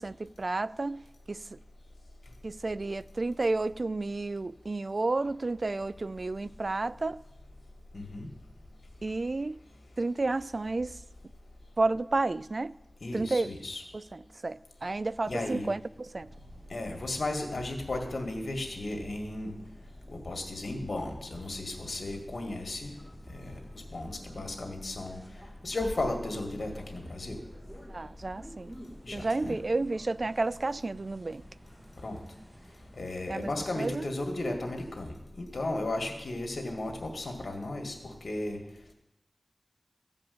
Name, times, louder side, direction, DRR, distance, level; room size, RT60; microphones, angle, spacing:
voice 1, 0.0-1.6 2.4-7.2 9.0-9.6 10.0-11.0 11.8-12.7 13.1-13.5 13.9-16.3 27.9-28.7 29.1-31.4 33.3-34.0, right 3 dB, 60° right, 0.3 m, -31 dB
voice 2, 7.9-8.3 13.0-13.8 15.3-15.7 16.7-19.5 20.1-22.9 23.3-23.6 23.9-25.2 25.6-27.4 29.0-29.6 32.0-32.2 33.0-38.6, left 2 dB, 85° left, 2.0 m, -35 dB
sound 1, 16.1-33.5, equal, 20° right, 2.2 m, -50 dB
15.5 x 5.3 x 8.5 m
wide cardioid pair, 55°, 0 cm